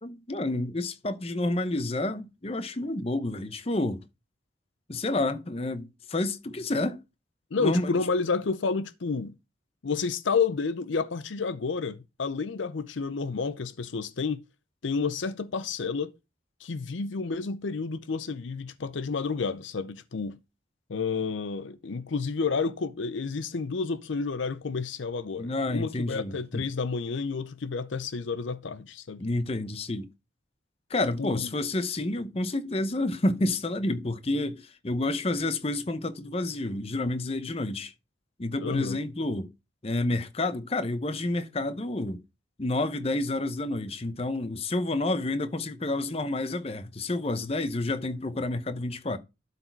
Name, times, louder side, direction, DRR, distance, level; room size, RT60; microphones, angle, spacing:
voice 1, 0.0-4.0 4.9-7.0 7.6-8.0 25.4-26.6 29.2-30.1 30.9-37.9 38.4-39.5 39.8-42.2 42.6-49.2, left 2 dB, 30° left, 0.7 m, -29 dB
voice 2, 7.5-9.4 9.8-14.4 14.8-16.1 16.6-20.4 20.9-29.2 31.2-31.5 38.6-39.0, left 4 dB, 75° left, 0.6 m, -30 dB
12.0 x 4.1 x 4.5 m
head